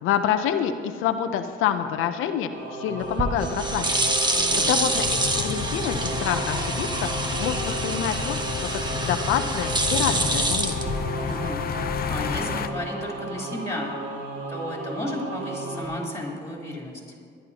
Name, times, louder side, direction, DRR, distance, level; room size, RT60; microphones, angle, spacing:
voice 1, 0.0-3.9 4.7-8.8 9.0-11.0, left 9 dB, 90° left, 8 dB, 0.7 m, -27 dB
Singing / Musical instrument, 2.5-15.8, right 1 dB, 85° right, 2.1 m, -34 dB
sound 1, 3.0-11.5, right 2 dB, 20° right, 1.2 m, -27 dB
voice 2, 4.3-4.9 11.2-11.6 12.1-14.0 14.5-17.0, left 1 dB, 15° left, -3 dB, 3.8 m, -33 dB
sound 2, 5.0-12.7, left 7 dB, 50° left, 0.6 m, -31 dB
20.5 x 11.5 x 2.9 m, 2.2 s
cardioid pair, 90°, 20 cm